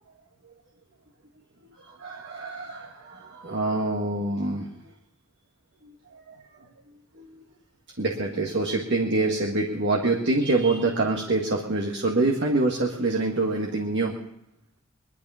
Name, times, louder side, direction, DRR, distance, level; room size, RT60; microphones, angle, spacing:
voice 1, 1.8-4.7 5.8-6.4 7.1-7.3 8.0-14.2, right 2 dB, 60° right, -1 dB, 1.7 m, -26 dB
21.5 x 12.0 x 5.7 m, 0.82 s
head